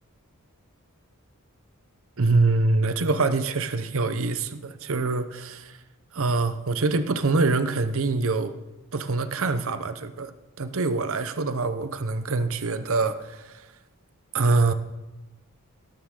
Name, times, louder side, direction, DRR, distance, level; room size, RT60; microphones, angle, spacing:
voice 1, 2.2-5.8 6.1-8.5 8.9-10.3 10.6-13.5 14.3-14.7, right 3 dB, 65° right, 11 dB, 0.8 m, -24 dB
17.5 x 13.5 x 3.8 m, 1.1 s
head